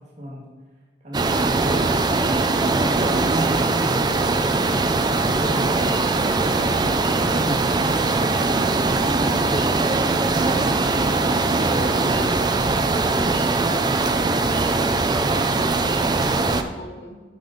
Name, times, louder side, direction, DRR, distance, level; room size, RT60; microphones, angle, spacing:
voice 1, 1.0-1.9 2.5-4.6 5.1-5.9 6.3-7.0 7.2-8.0 8.7-10.8 11.1-12.3, equal, 45° right, -4 dB, 1.8 m, -34 dB
sound 1, 1.1-16.6, right 3 dB, 25° right, 0.4 m, -21 dB
voice 2, 14.0-15.7 16.1-17.2, left 1 dB, 70° left, -5 dB, 2.6 m, -41 dB
8.9 x 5.2 x 4.0 m, 1.3 s
head